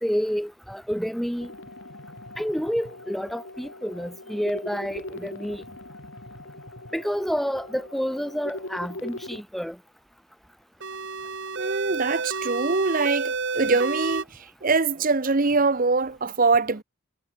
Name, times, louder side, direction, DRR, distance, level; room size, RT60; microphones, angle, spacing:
voice 1, 0.0-1.5 2.4-5.6 6.9-9.8, equal, ahead, 0.5 m, -29 dB
sound 1, 1.4-9.4, left 1 dB, 55° left, 6.8 m, -41 dB
sound 2, 10.8-14.2, right 4 dB, 55° right, 1.5 m, -30 dB
voice 2, 11.6-14.2 14.6-16.8, right 3 dB, 40° right, 0.8 m, -23 dB
head